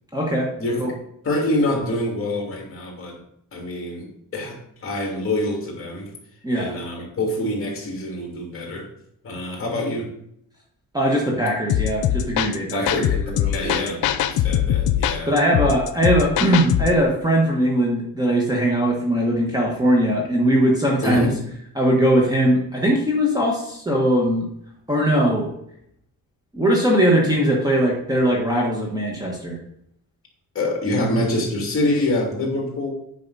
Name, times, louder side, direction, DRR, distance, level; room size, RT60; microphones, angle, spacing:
voice 1, 0.1-0.5 0.8-0.9 6.4-6.7 10.9-12.9 13.2-13.9 15.3-21.3 21.7-24.5 24.9-25.5 26.5-29.6, equal, 10° right, -2 dB, 1.4 m, -20 dB
voice 2, 1.2-3.2 3.5-4.1 4.3-4.6 4.8-6.1 6.5-8.9 9.2-10.1 12.7-14.0 14.3-15.3 21.0-21.3 30.5-32.9, left 1 dB, 35° left, -1 dB, 2.8 m, -25 dB
sound 1, 11.7-17.0, left 10 dB, 85° left, 0.7 m, -22 dB
9.2 x 5.5 x 4.1 m, 0.72 s
cardioid pair, 145°, 36 cm